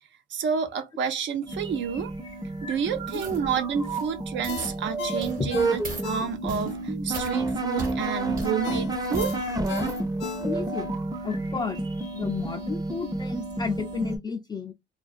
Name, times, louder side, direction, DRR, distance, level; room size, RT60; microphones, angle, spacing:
voice 1, 0.3-2.1 2.6-9.3, right 7 dB, 70° right, 0.6 m, -29 dB
sound 1, 1.5-14.2, right 2 dB, 20° right, 0.6 m, -30 dB
sound 2, 3.1-3.4 3.8-4.1 4.4-4.8 5.2-5.5 5.8-6.1 6.5-6.7 7.1-7.3 7.8-8.0 8.4-8.5 8.9-10.0 10.5-10.6, right 3 dB, 45° right, 1.1 m, -39 dB
Ringtone, 4.5-6.7 7.1-7.2 8.6-10.9 11.3-11.4, left 8 dB, 65° left, 0.6 m, -37 dB
voice 2, 10.4-11.8 12.1-14.7, left 5 dB, 20° left, 0.4 m, -32 dB
2.4 x 2.3 x 2.4 m
cardioid pair, 90°, 20 cm